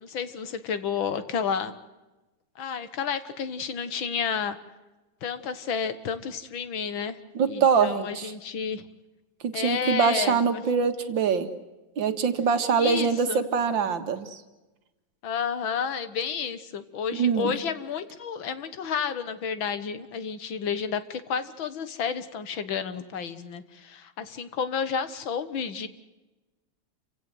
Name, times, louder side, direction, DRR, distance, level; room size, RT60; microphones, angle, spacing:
voice 1, 0.0-1.8 2.6-4.6 5.2-7.2 7.5-8.9 9.5-10.6 12.8-13.4 15.2-25.9, left 7 dB, 90° left, 12 dB, 2.2 m, -31 dB
voice 2, 7.4-8.3 9.4-11.5 12.0-14.4 17.1-17.5, right 6 dB, 75° right, 8 dB, 2.4 m, -24 dB
28.5 x 16.5 x 7.9 m, 1.1 s
omnidirectional pair, 2.1 m